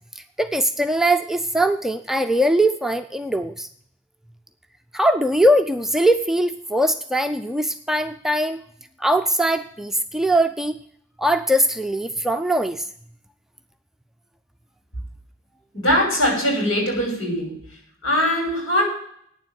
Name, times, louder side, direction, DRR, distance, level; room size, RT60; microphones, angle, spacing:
voice 1, 0.2-3.7 4.9-8.6 9.0-10.7 11.2-12.9, right 1 dB, ahead, 7 dB, 0.4 m, -21 dB
voice 2, 15.7-17.6 18.0-18.8, equal, 85° left, 1 dB, 5.7 m, -21 dB
9.6 x 7.3 x 9.1 m, 0.66 s
head